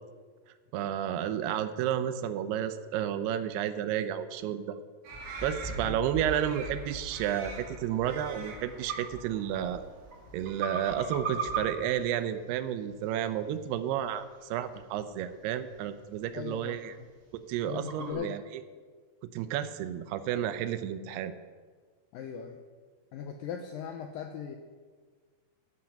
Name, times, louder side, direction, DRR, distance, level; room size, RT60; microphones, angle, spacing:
voice 1, 0.7-4.8 5.4-9.9 10.3-16.9 17.3-18.6 19.3-21.3, right 10 dB, 80° right, 11 dB, 2.6 m, -31 dB
sound 1, 5.0-10.9, right 3 dB, 65° right, 3.3 m, -47 dB
sound 2, 5.1-11.9, right 1 dB, 5° right, 1.7 m, -44 dB
sound 3, 7.8-18.1, right 5 dB, 45° right, 1.8 m, -42 dB
voice 2, 16.3-17.1 17.6-18.4 22.1-22.6 23.1-24.6, left 7 dB, 85° left, 5 dB, 2.0 m, -39 dB
13.0 x 8.8 x 5.8 m, 1.5 s
omnidirectional pair, 4.8 m